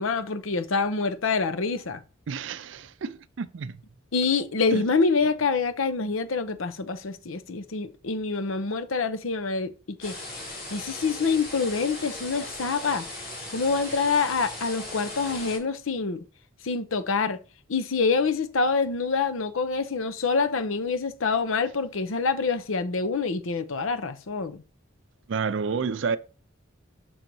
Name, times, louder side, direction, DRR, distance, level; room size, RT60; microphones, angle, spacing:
voice 1, 0.0-2.0 4.1-9.7 10.0-10.4 10.7-13.0 13.5-16.2 16.6-17.4 17.7-24.6, left 4 dB, 85° left, 0.7 m, -26 dB
voice 2, 2.3-3.8 4.7-4.8 25.3-26.2, right 5 dB, 65° right, 0.4 m, -30 dB
sound 1, 10.0-15.6, left 2 dB, 50° left, 2.7 m, -38 dB
6.2 x 4.0 x 4.6 m
head